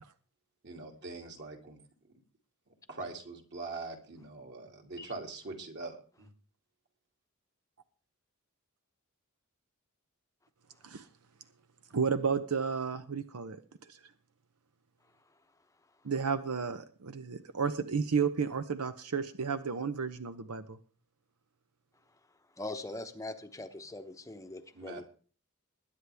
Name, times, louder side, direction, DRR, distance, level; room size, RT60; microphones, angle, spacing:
voice 1, 0.6-1.8 2.1-2.2 2.9-6.3 24.7-25.0, right 3 dB, 50° right, 2 dB, 2.6 m, -43 dB
voice 2, 11.9-14.0 16.0-20.8, right 5 dB, 80° right, 10 dB, 0.8 m, -32 dB
voice 3, 22.6-25.0, left 2 dB, 15° left, 7 dB, 0.9 m, -41 dB
21.0 x 9.8 x 3.5 m, 0.40 s
head